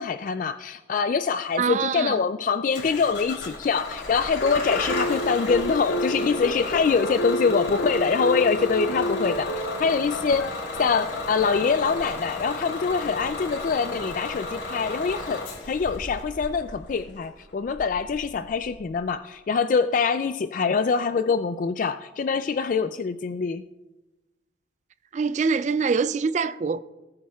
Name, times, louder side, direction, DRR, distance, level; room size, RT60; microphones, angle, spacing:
voice 1, 0.0-10.5 10.8-23.6, left 5 dB, 45° left, 0.3 m, -24 dB
voice 2, 1.6-2.2 25.1-26.8, right 5 dB, 40° right, 0.3 m, -24 dB
Bus / Engine starting, 2.7-19.0, left 2 dB, 65° left, 3.3 m, -34 dB
sound 1, 4.4-14.2, equal, 85° left, 0.6 m, -31 dB
18.5 x 8.7 x 2.4 m
head